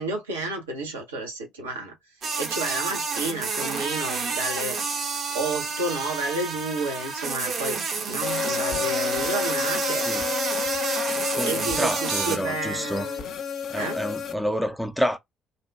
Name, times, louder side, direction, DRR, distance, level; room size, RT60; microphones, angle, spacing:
voice 1, 0.0-1.9 2.4-4.8 5.3-7.8 8.1-10.1 11.5-13.3 13.7-14.0, right 2 dB, 80° right, 0.8 m, -31 dB
sound 1, 2.2-12.4, right 5 dB, 50° right, 0.7 m, -29 dB
sound 2, 8.2-14.3, left 8 dB, 50° left, 0.6 m, -30 dB
voice 2, 11.3-13.1 13.7-15.2, equal, ahead, 0.4 m, -28 dB
2.6 x 2.2 x 2.2 m
figure-of-eight pair, 45°, 0 cm